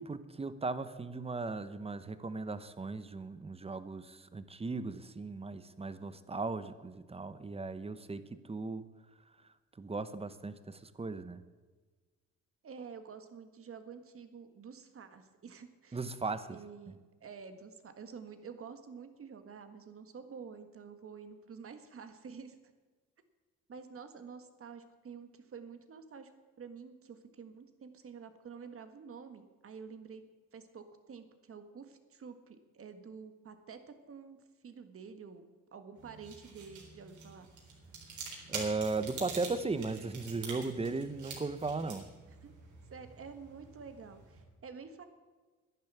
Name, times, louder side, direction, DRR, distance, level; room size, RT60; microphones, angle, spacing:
voice 1, 0.0-8.9 9.8-11.4 15.9-16.6 38.5-42.1, right 3 dB, 20° right, 13 dB, 0.9 m, -37 dB
voice 2, 12.6-16.0 16.5-22.6 23.7-26.3 26.6-30.2 30.5-34.4 34.6-35.5 35.7-37.5 42.3-42.5 42.9-45.0, right 6 dB, 45° right, 8 dB, 1.6 m, -49 dB
sound 1, 36.0-44.4, right 4 dB, 70° right, 3.9 m, -47 dB
10.5 x 10.5 x 8.2 m, 1.4 s
cardioid pair, 90°, 30 cm